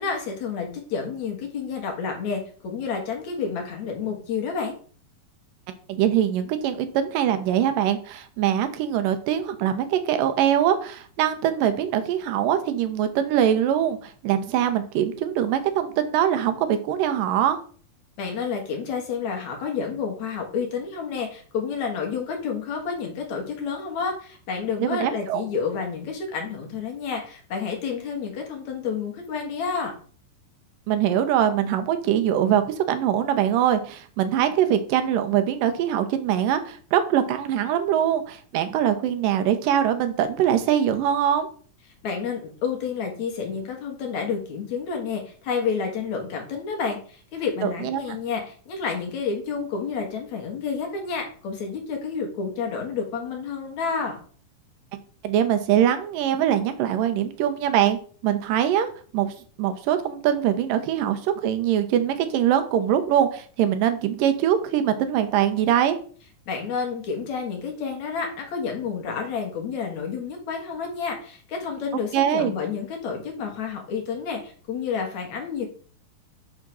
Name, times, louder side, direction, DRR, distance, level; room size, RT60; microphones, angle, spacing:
voice 1, 0.0-4.8 18.2-29.9 42.0-54.2 66.5-75.7, left 5 dB, 65° left, 2 dB, 2.5 m, -30 dB
voice 2, 5.9-17.6 24.8-25.4 30.9-41.5 47.6-48.0 55.2-58.9 59.1-59.3 59.6-66.0 72.1-72.5, right 10 dB, 90° right, 9 dB, 2.5 m, -23 dB
6.5 x 3.6 x 6.1 m, 0.43 s
omnidirectional pair, 3.8 m